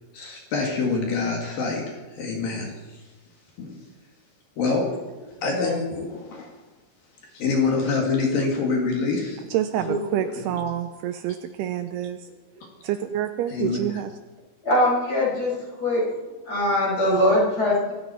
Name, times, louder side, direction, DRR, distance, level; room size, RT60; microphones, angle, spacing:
voice 1, 0.1-3.0 3.6-3.8 4.6-5.1 5.4-6.5 7.3-9.4 9.8-9.9 10.5-10.6 13.5-13.8, left 4 dB, 60° left, 3.4 m, -26 dB
voice 2, 5.5-5.9 9.8-9.9 14.6-16.0 16.5-17.9, left 1 dB, 20° left, 5.6 m, -22 dB
voice 3, 9.5-12.3 12.8-14.1, right 11 dB, 80° right, 2.5 m, -27 dB
24.5 x 13.5 x 4.3 m
omnidirectional pair, 5.0 m